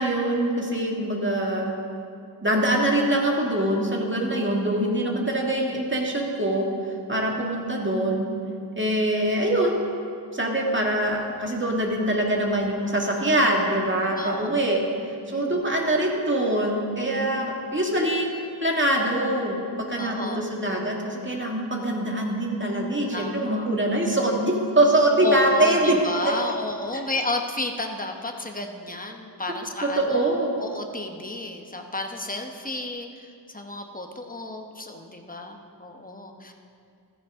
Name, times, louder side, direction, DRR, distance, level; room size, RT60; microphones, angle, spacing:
voice 1, 0.0-1.8 2.4-6.7 7.1-8.3 8.7-9.8 10.3-18.3 18.6-19.6 19.9-26.0 26.9-27.0 29.8-30.5, right 1 dB, 25° right, -1 dB, 2.0 m, -24 dB
voice 2, 14.1-14.6 15.3-15.6 17.2-17.6 20.0-20.4 23.1-23.7 25.2-30.2 30.6-33.1 33.5-36.5, left 2 dB, 20° left, 3 dB, 1.1 m, -32 dB
15.0 x 14.0 x 3.7 m, 2.4 s
wide cardioid pair, 75°, 44 cm